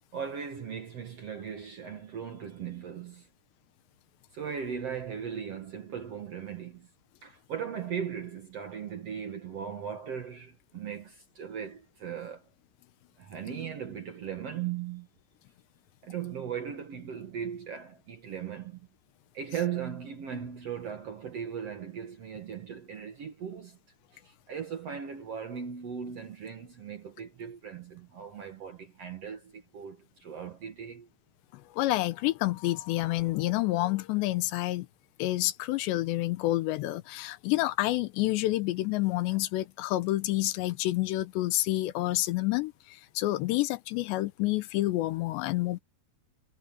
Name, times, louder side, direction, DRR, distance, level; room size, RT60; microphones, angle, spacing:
voice 1, 0.1-3.3 4.3-6.9 7.2-12.5 13.2-15.1 16.0-18.9 19.3-23.8 24.1-31.1, right 8 dB, 60° right, 1.7 m, -38 dB
voice 2, 31.5-34.9 35.2-42.7 43.2-45.8, left 17 dB, 85° left, 3.2 m, -28 dB
omnidirectional pair, 4.9 m